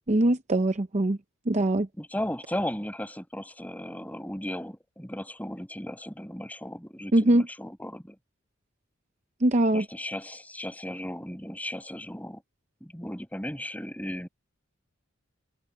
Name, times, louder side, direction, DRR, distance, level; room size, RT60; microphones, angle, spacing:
voice 1, 0.1-1.2 1.5-1.9 7.1-7.5 9.4-9.9, right 1 dB, 35° right, 0.7 m, -22 dB
voice 2, 2.0-8.2 9.7-12.4 12.8-14.3, left 1 dB, 10° left, 5.7 m, -36 dB
head